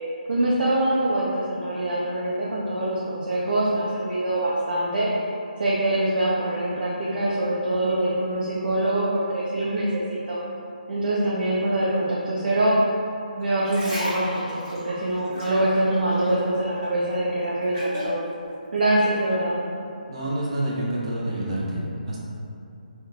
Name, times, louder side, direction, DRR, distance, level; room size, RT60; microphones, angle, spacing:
voice 1, 0.3-5.1 5.6-10.4 10.9-12.8 13.4-18.2 18.7-19.6, right 1 dB, 75° right, -6 dB, 0.6 m, -24 dB
sound 1, 13.4-16.5 16.8-18.2 18.8-18.9, left 1 dB, 20° right, 1.1 m, -34 dB
voice 2, 20.1-22.2, right 1 dB, 35° right, -6 dB, 0.7 m, -28 dB
2.8 x 2.2 x 3.6 m, 2.7 s
hypercardioid pair, 170°, 5 cm